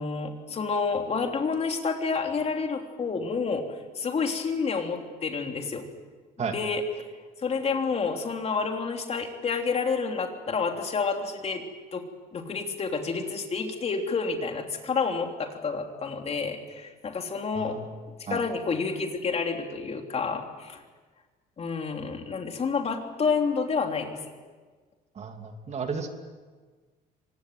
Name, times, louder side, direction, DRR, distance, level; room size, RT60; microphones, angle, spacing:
voice 1, 0.0-3.6 4.0-5.9 6.5-6.8 7.4-11.6 11.9-12.0 12.3-17.8 18.3-20.8 21.6-24.2, left 5 dB, 40° left, 4 dB, 3.4 m, -29 dB
voice 2, 17.5-17.9 18.3-18.4 25.2-26.1, right 5 dB, 40° right, 5 dB, 2.8 m, -33 dB
24.5 x 20.5 x 9.3 m, 1.4 s
cardioid pair, 110°, 17 cm